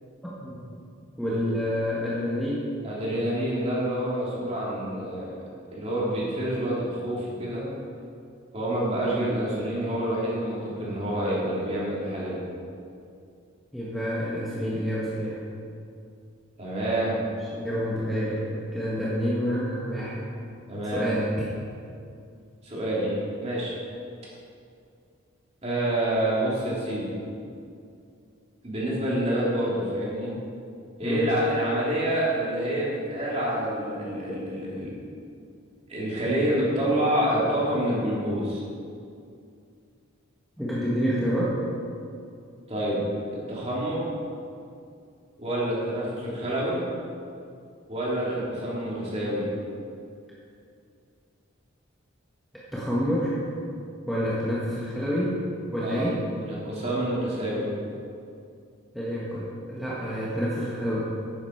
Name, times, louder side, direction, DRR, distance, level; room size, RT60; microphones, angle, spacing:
voice 1, 0.2-0.6 1.2-2.7 13.7-15.4 17.2-20.3 20.9-21.4 31.0-31.4 40.6-41.6 52.7-53.3 54.1-55.5 55.7-56.2 58.9-61.0, equal, ahead, -8 dB, 1.4 m, -28 dB
voice 2, 2.8-5.3 5.7-7.7 8.5-12.4 16.6-17.1 20.7-21.1 22.6-23.2 23.4-23.7 25.6-27.1 28.6-30.3 31.0-34.9 35.9-38.6 42.7-43.0 43.5-44.0 45.4-46.8 47.9-49.5 55.8-56.1 56.4-57.7, right 1 dB, 30° right, -7 dB, 3.1 m, -27 dB
11.5 x 9.8 x 4.6 m, 2.5 s
head